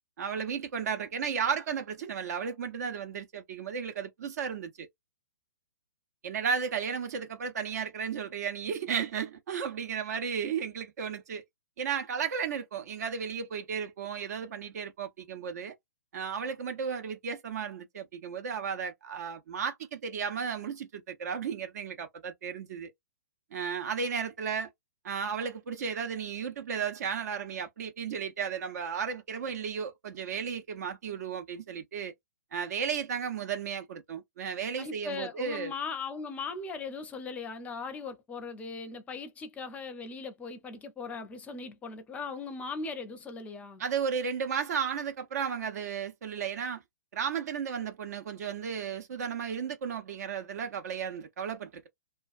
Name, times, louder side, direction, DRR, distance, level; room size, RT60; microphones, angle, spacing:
voice 1, 0.2-4.9 6.2-11.4 11.8-15.8 16.1-22.9 23.5-24.7 25.0-32.1 32.5-35.7 43.8-46.8 47.1-51.9, right 6 dB, 55° right, 0.7 m, -34 dB
voice 2, 34.8-43.8, left 4 dB, 15° left, 0.5 m, -39 dB
2.3 x 2.3 x 2.4 m
figure-of-eight pair, 125°, 10 cm